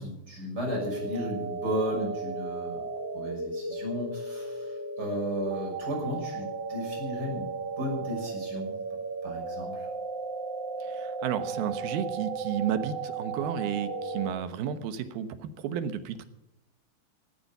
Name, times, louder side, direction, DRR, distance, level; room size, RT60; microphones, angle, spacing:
voice 1, 0.0-2.9 3.1-7.5 7.8-8.7 9.2-9.9, equal, 25° right, 0 dB, 6.9 m, -34 dB
sound 1, 0.6-14.3, right 3 dB, 45° right, 2.8 m, -35 dB
voice 2, 10.9-16.2, right 8 dB, 90° right, 10 dB, 3.1 m, -32 dB
16.5 x 13.5 x 5.6 m, 0.84 s
omnidirectional pair, 4.2 m